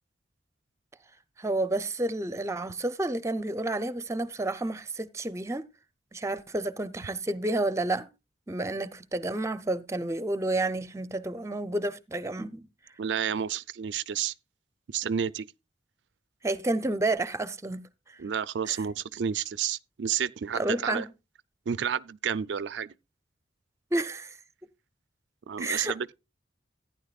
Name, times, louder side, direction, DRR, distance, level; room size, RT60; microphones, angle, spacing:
voice 1, 1.4-5.7 6.1-8.1 8.5-12.7 16.4-17.9 18.7-18.8 20.5-21.1 23.9-24.4 25.6-26.1, right 2 dB, 15° right, 0.6 m, -30 dB
voice 2, 13.0-14.3 14.9-15.5 18.2-21.1 21.7-22.9 25.5-26.1, right 8 dB, 80° right, 0.4 m, -30 dB
14.5 x 9.8 x 2.4 m
head